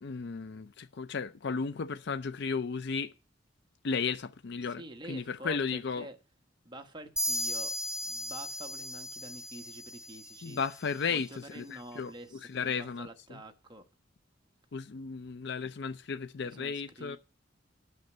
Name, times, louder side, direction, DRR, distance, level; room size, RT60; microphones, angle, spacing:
voice 1, 0.0-3.1 3.8-4.8 5.1-6.1 10.4-12.1 12.5-13.4 14.7-17.2, left 5 dB, 60° left, 0.5 m, -34 dB
voice 2, 4.8-6.2 6.6-7.8 8.0-10.6 11.1-13.8 16.4-17.2, right 1 dB, 25° right, 1.2 m, -47 dB
sound 1, 7.2-10.7, left 1 dB, 5° right, 1.3 m, -36 dB
9.2 x 6.5 x 7.9 m
head